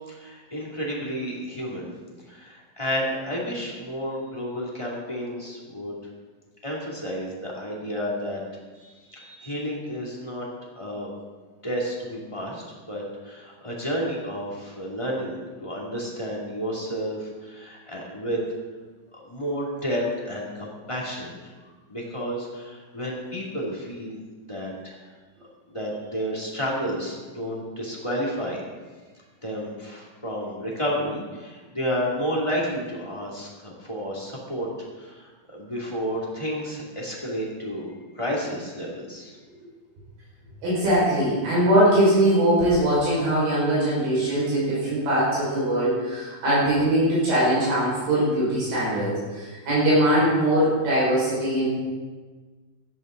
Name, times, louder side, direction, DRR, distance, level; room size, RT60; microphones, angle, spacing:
voice 1, 0.1-1.9 2.3-6.0 6.6-8.4 8.7-10.5 10.7-11.1 11.6-18.4 19.1-21.3 21.9-25.0 25.7-28.6 29.4-34.7 35.0-39.4, equal, 10° left, -3 dB, 1.5 m, -31 dB
voice 2, 40.6-51.8, right 1 dB, 65° right, -8 dB, 7.8 m, -21 dB
16.5 x 14.0 x 4.0 m, 1.4 s
omnidirectional pair, 5.4 m